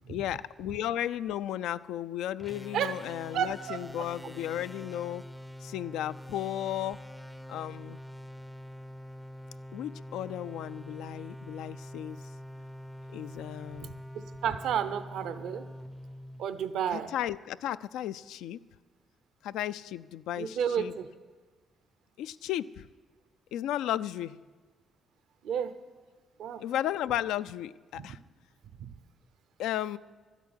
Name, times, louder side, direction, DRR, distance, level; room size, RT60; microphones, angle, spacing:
voice 1, 0.1-5.2 5.6-7.0 7.5-8.0 9.7-12.2 13.1-14.0 16.9-18.6 19.4-20.9 22.2-22.9 23.5-24.4 26.6-28.2 29.6-30.0, left 12 dB, 90° left, 15 dB, 0.3 m, -34 dB
sound 1, 2.4-17.0, equal, ahead, 0.4 m, -45 dB
voice 2, 3.3-4.1 14.1-15.7 16.4-17.1 20.4-21.1 25.4-25.8 26.4-26.6 28.0-28.1 28.8-28.9, right 8 dB, 80° right, 12 dB, 0.7 m, -32 dB
12.5 x 8.2 x 9.5 m, 1.4 s
cardioid pair, 90°, 0 cm